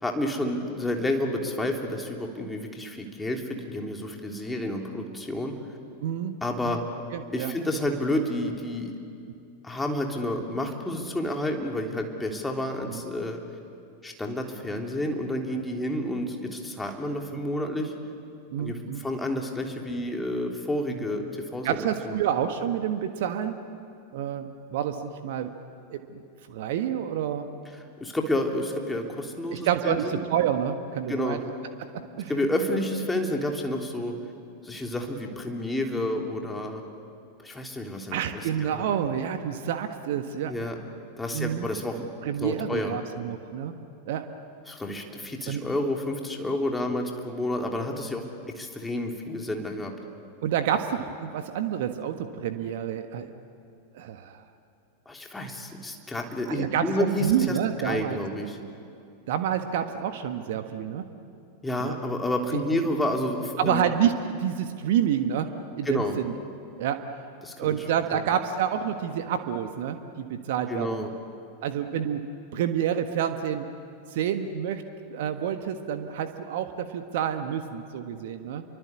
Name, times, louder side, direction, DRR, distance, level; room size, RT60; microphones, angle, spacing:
voice 1, 0.0-5.5 6.4-6.8 7.3-8.9 9.6-13.4 14.0-17.9 18.6-22.2 28.0-30.2 31.1-31.4 32.3-34.1 34.6-36.8 37.4-38.8 40.5-40.8 41.2-42.0 42.4-43.0 44.7-48.3 48.5-49.9 55.0-57.6 57.8-58.6 61.6-63.9 65.8-66.1 67.4-67.8 68.1-68.2 70.7-71.1, left 1 dB, 10° left, 2 dB, 3.3 m, -30 dB
voice 2, 6.0-6.4 6.6-6.8 7.1-7.5 12.9-13.0 17.3-17.4 18.5-19.0 20.9-21.0 21.6-23.6 24.1-25.5 25.9-26.2 26.5-27.5 29.5-31.4 31.9-32.3 38.1-40.5 41.3-41.7 42.2-43.8 44.1-44.2 45.5-45.6 50.4-53.3 53.9-54.4 56.5-58.2 59.3-61.0 61.8-62.0 63.6-66.3 66.8-67.0 67.6-71.1 71.6-72.2 72.5-73.7 74.1-74.8 75.1-78.6, right 9 dB, 55° right, 8 dB, 1.5 m, -28 dB
29.5 x 24.0 x 8.4 m, 2.5 s
figure-of-eight pair, 90°, 0 cm